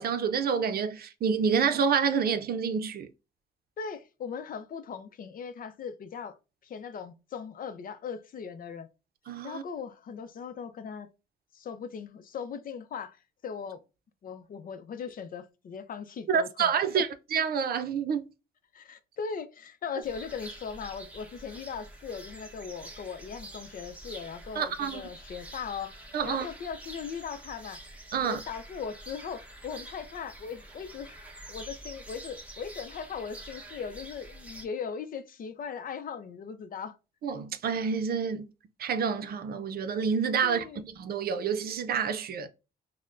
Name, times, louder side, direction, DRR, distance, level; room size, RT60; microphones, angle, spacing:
voice 1, 0.0-3.1 9.3-9.6 16.3-18.2 24.6-25.0 26.1-26.4 28.1-28.4 37.2-38.4 38.8-42.5, right 6 dB, 60° right, 0.6 m, -28 dB
voice 2, 3.8-6.4 6.6-8.9 9.4-11.1 11.5-13.8 14.2-17.0 18.7-27.8 28.2-31.2 31.5-37.0 40.4-40.8, left 6 dB, 55° left, 0.6 m, -39 dB
sound 1, 20.0-34.6, right 1 dB, 10° right, 1.0 m, -47 dB
5.6 x 2.1 x 2.5 m
cardioid pair, 110°, 17 cm